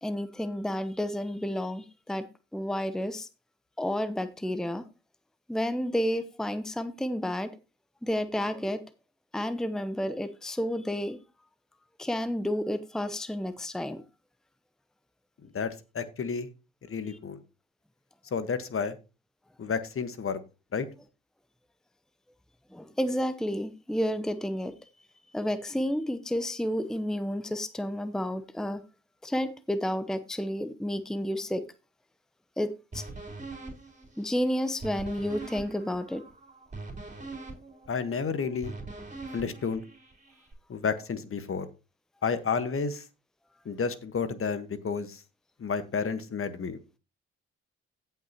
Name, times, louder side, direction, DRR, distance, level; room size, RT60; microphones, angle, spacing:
voice 1, 0.0-2.3 2.5-3.3 3.8-4.8 5.5-7.5 8.0-8.8 9.3-11.2 12.0-14.0 17.1-17.2 22.7-24.7 25.3-28.8 29.2-31.6 32.6-33.1 34.2-36.2, equal, ahead, 0.9 m, -31 dB
voice 2, 15.4-16.5 16.9-17.4 18.3-19.0 19.6-20.4 20.7-20.9 37.9-38.7 39.3-39.8 40.7-41.7 42.2-43.0 43.6-45.2 45.6-46.8, left 5 dB, 45° left, 1.4 m, -31 dB
sound 1, 32.9-40.5, right 3 dB, 25° right, 3.8 m, -43 dB
16.5 x 5.7 x 3.0 m
hypercardioid pair, 45°, 31 cm